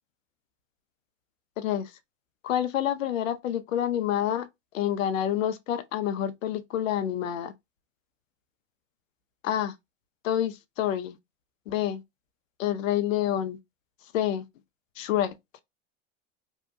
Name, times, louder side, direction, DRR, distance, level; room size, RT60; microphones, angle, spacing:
voice 1, 1.6-1.9 2.4-4.5 4.7-7.5 9.4-9.7 10.2-11.2 11.7-12.0 12.6-13.6 14.1-14.5 15.0-15.3, left 11 dB, 80° left, 0.6 m, -28 dB
2.7 x 2.1 x 2.4 m
hypercardioid pair, 95°, 39 cm